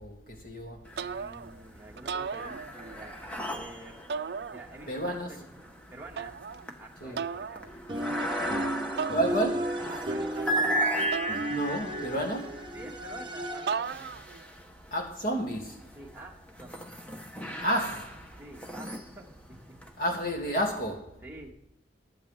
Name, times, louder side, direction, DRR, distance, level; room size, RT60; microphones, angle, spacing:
voice 1, 0.0-0.8 4.9-5.4 7.0-7.2 9.1-9.9 11.5-12.7 14.9-15.8 17.6-18.2 20.0-21.2, right 1 dB, 55° left, 2.4 m, -31 dB
sound 1, 0.9-1.5 1.9-15.1 15.7-20.2, right 1 dB, 5° left, 0.9 m, -36 dB
voice 2, 1.0-4.0 4.5-6.3 6.8-7.7 8.1-8.7 9.9-10.9 12.7-14.1 16.0-16.9 18.4-19.8 21.2-21.5, right 2 dB, 10° right, 1.7 m, -48 dB
sound 2, 1.0-1.6 2.0-3.1 4.1-5.0 6.2-6.7 7.2-7.7 9.0-9.8 11.1-12.1 13.7-14.4, right 6 dB, 65° right, 0.4 m, -36 dB
sound 3, 7.9-14.0, equal, 25° right, 1.0 m, -34 dB
20.5 x 7.8 x 3.4 m
head